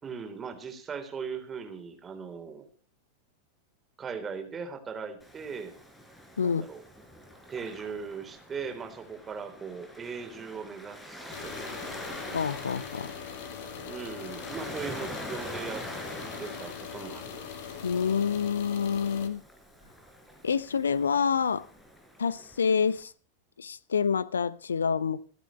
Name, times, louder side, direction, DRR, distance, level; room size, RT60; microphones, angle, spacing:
voice 1, 0.0-2.7 4.0-5.7 6.4-6.8 7.5-12.1 13.9-15.9 16.4-17.5, right 5 dB, 20° right, 3.8 m, -39 dB
Waves surf, 5.2-23.0, equal, 10° left, 5.2 m, -45 dB
voice 2, 6.4-6.7 12.3-13.1 17.8-19.4 20.4-21.7 22.2-23.1 23.6-25.2, left 6 dB, 70° left, 0.8 m, -27 dB
sound 1, 11.3-19.3, left 8 dB, 55° left, 2.2 m, -41 dB
27.5 x 12.0 x 3.2 m
figure-of-eight pair, 90°, 0 cm